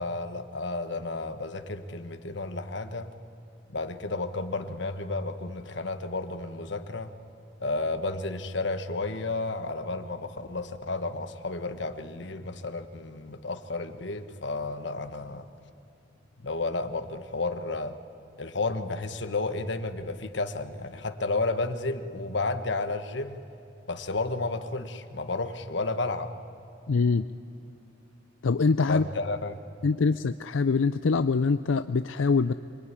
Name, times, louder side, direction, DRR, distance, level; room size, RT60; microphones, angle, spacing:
voice 1, 0.0-3.1 3.7-7.1 7.6-15.4 16.4-18.0 18.4-23.4 23.9-26.3 28.9-29.6, left 3 dB, 65° left, 8 dB, 1.4 m, -32 dB
voice 2, 26.9-27.2 28.4-29.0 29.8-32.5, left 4 dB, 85° left, 11 dB, 0.5 m, -24 dB
26.5 x 21.5 x 9.9 m, 2.8 s
head